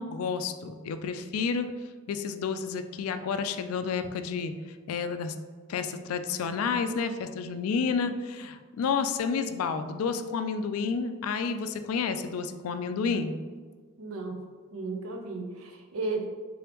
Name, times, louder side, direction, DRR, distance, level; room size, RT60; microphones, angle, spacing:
voice 1, 0.0-1.7 2.1-4.5 4.9-5.3 5.7-13.3, left 5 dB, 75° left, 9 dB, 0.3 m, -30 dB
voice 2, 14.0-14.4 14.7-16.3, right 3 dB, 75° right, 3 dB, 0.6 m, -34 dB
3.8 x 3.4 x 3.0 m, 1.5 s
head